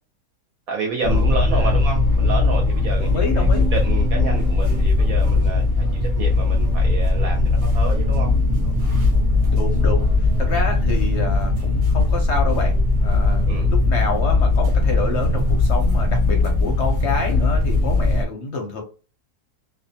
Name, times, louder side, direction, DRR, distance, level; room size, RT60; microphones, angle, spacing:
voice 1, 0.7-8.3 13.5-13.7, right 4 dB, 70° right, 0.9 m, -29 dB
sound 1, 1.0-18.2, left 2 dB, 45° right, 0.6 m, -19 dB
voice 2, 3.0-3.7 9.5-12.8 13.0-18.8, left 3 dB, 60° left, 0.7 m, -28 dB
2.6 x 2.2 x 2.7 m
omnidirectional pair, 1.7 m